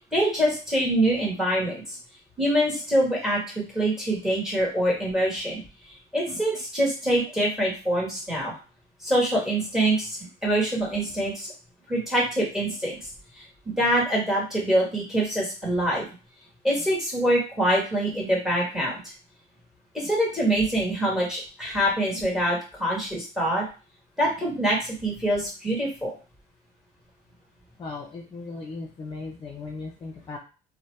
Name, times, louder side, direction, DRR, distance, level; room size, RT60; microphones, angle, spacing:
voice 1, 0.0-2.0 2.4-3.4 3.7-5.6 6.1-8.5 9.0-11.5 11.9-13.0 13.6-16.0 16.6-19.1 19.9-23.6 24.2-26.1, right 1 dB, 5° right, -3 dB, 1.4 m, -25 dB
voice 2, 27.8-30.4, left 3 dB, 30° left, 0 dB, 0.6 m, -37 dB
2.7 x 2.1 x 3.1 m, 0.34 s
cardioid pair, 110°, 17 cm